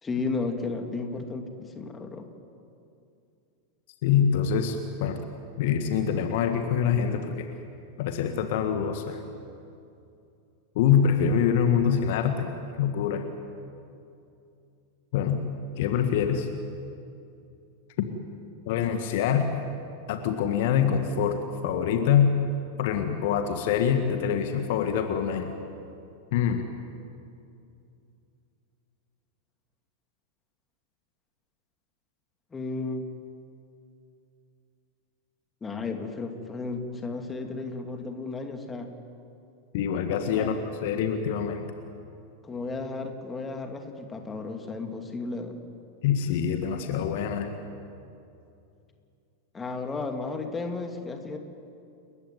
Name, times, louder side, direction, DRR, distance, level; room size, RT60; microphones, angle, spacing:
voice 1, 0.0-2.3 32.5-33.0 35.6-38.9 40.3-40.5 42.4-45.6 49.5-51.4, left 3 dB, 15° left, 4 dB, 2.7 m, -33 dB
voice 2, 4.0-5.2 5.6-7.5 8.0-9.2 10.8-12.5 12.8-13.2 15.1-15.4 15.8-16.5 18.7-19.5 20.1-22.3 22.8-25.5 26.3-26.7 39.7-40.6 40.8-41.7 46.0-47.5, left 8 dB, 50° left, 6 dB, 1.7 m, -25 dB
29.5 x 15.5 x 9.6 m, 2.6 s
figure-of-eight pair, 90°, 0 cm